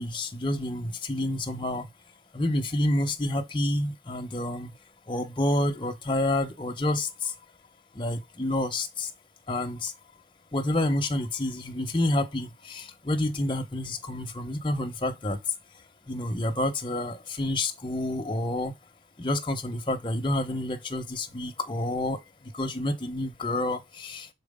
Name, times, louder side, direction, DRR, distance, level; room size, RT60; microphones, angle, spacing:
voice 1, 0.0-1.9 2.3-4.7 5.1-7.3 7.9-9.1 9.5-9.9 10.5-15.4 16.1-18.7 19.2-22.2 22.5-24.3, left 1 dB, 25° left, 0.9 m, -28 dB
6.4 x 4.5 x 3.5 m
head